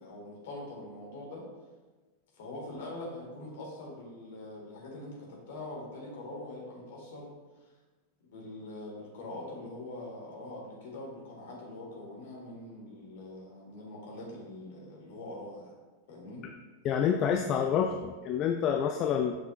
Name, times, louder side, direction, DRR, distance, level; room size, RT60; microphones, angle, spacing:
voice 1, 0.0-1.4 2.4-7.3 8.2-15.7 16.1-16.4, left 1 dB, 55° left, -2 dB, 1.9 m, -43 dB
voice 2, 16.8-19.4, left 8 dB, 35° left, 5 dB, 0.4 m, -28 dB
7.8 x 5.5 x 2.5 m, 1.3 s
figure-of-eight pair, 90°, 0 cm